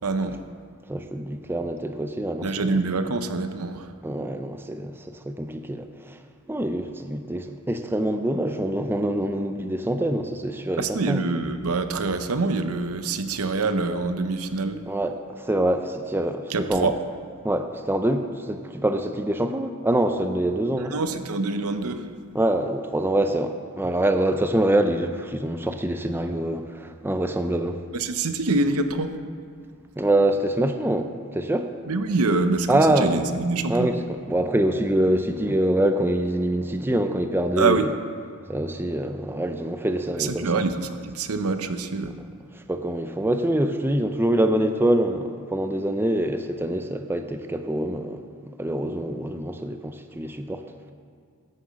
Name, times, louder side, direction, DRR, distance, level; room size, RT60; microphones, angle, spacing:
voice 1, 0.0-0.4 2.4-3.9 10.8-14.8 16.5-16.9 20.9-22.1 27.9-29.2 31.9-33.9 37.6-37.9 40.2-42.1, right 3 dB, 70° right, 9 dB, 0.8 m, -25 dB
voice 2, 0.9-2.8 4.0-6.2 6.5-11.2 14.9-16.9 17.4-20.9 22.3-27.8 30.0-31.7 32.7-33.1 33.7-34.0 34.3-37.9 38.5-40.6 42.5-50.6, right 1 dB, 10° right, 7 dB, 0.5 m, -25 dB
11.0 x 7.8 x 7.4 m, 2.2 s
head